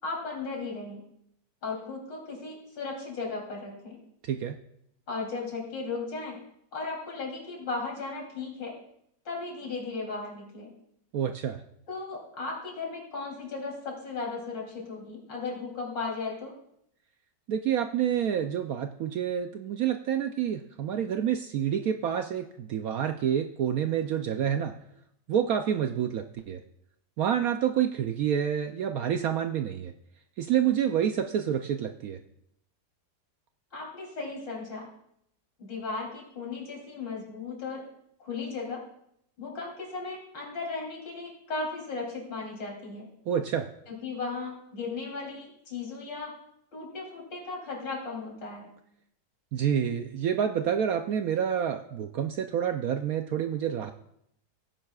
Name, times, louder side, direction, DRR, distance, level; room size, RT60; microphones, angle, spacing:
voice 1, 0.0-1.0 1.6-4.0 5.1-6.4 6.7-8.8 9.3-10.7 11.9-16.6 33.7-34.9 35.6-37.9 38.2-38.8 39.4-43.1 43.9-46.3 46.7-48.7, left 3 dB, 80° left, -2 dB, 3.9 m, -36 dB
voice 2, 4.2-4.6 11.1-11.6 17.5-24.7 25.3-26.6 27.2-29.9 30.4-32.2 43.3-43.7 49.5-53.9, right 9 dB, 70° right, 7 dB, 0.9 m, -28 dB
17.0 x 10.0 x 2.4 m, 0.74 s
omnidirectional pair, 2.0 m